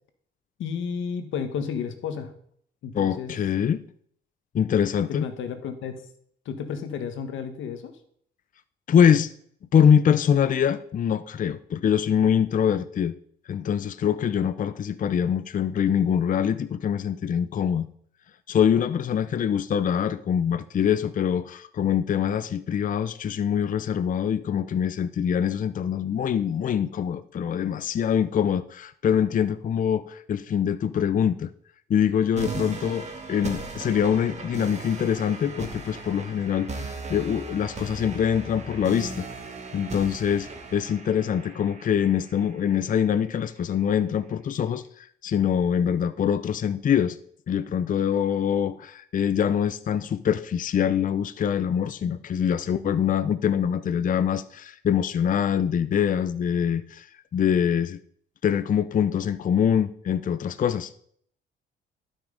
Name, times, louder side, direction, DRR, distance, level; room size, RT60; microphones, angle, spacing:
voice 1, 0.6-2.3 2.8-3.3 5.1-6.0 6.4-8.0, left 7 dB, 75° left, 9 dB, 1.5 m, -32 dB
voice 2, 2.9-3.8 4.5-5.3 8.9-9.3 9.7-13.1 13.5-17.9 18.5-31.5 31.9-39.3 39.7-47.2 47.5-57.1 57.3-58.0 58.4-60.9, left 8 dB, 45° left, 14 dB, 0.5 m, -24 dB
sound 1, 32.4-43.3, right 3 dB, 35° right, 2.2 m, -37 dB
12.0 x 6.2 x 5.0 m, 0.63 s
cardioid pair, 90°, 20 cm